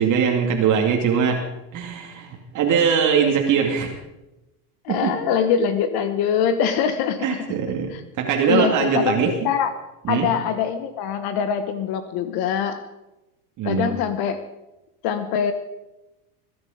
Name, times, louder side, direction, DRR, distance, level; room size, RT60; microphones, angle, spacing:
voice 1, 0.0-1.4 1.7-3.9 4.9-5.1 7.2-9.3 10.0-10.3 13.6-13.9, right 7 dB, 40° right, 1 dB, 2.4 m, -21 dB
voice 2, 4.8-7.4 7.9-8.0 8.5-9.7 10.1-12.8 13.6-14.4 15.0-15.5, left 7 dB, 55° left, 10 dB, 1.4 m, -23 dB
20.5 x 11.0 x 5.1 m, 0.98 s
supercardioid pair, 115°, 45 cm